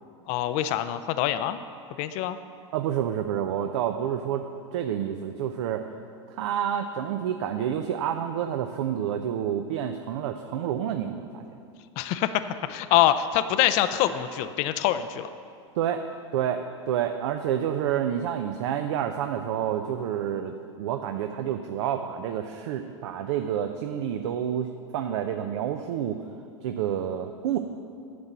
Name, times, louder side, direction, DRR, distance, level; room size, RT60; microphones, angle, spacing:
voice 1, 0.3-1.6 2.0-2.4 12.0-15.3, left 12 dB, 50° left, 11 dB, 0.5 m, -25 dB
voice 2, 2.7-5.9 6.3-11.4 15.8-16.0 16.3-24.7 24.9-26.2 26.6-27.6, right 9 dB, 70° right, 6 dB, 0.6 m, -29 dB
9.5 x 6.7 x 7.4 m, 2.4 s
hypercardioid pair, 100°, 15 cm